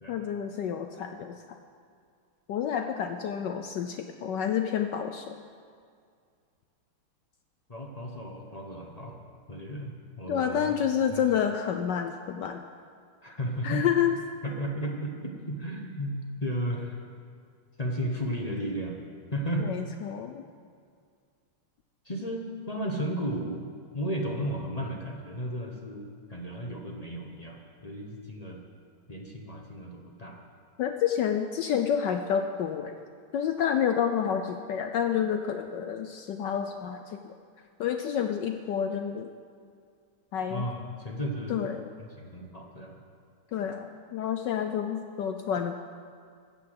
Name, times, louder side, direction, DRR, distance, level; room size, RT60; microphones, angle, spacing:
voice 1, 0.1-1.3 2.5-5.3 10.3-12.6 13.6-14.2 19.6-20.4 30.8-33.0 33.3-37.2 37.8-39.3 40.3-40.7 41.5-41.9 43.5-45.7, left 8 dB, 70° left, 6 dB, 1.1 m, -29 dB
voice 2, 7.7-10.7 11.1-11.2 13.2-13.9 14.4-17.0 17.8-19.0 19.3-19.7 22.0-23.7 23.9-26.0 26.3-28.6 29.1-30.4 40.5-41.6 42.0-43.0, equal, 30° left, 1 dB, 0.7 m, -34 dB
15.0 x 7.1 x 7.7 m, 2.2 s
omnidirectional pair, 2.3 m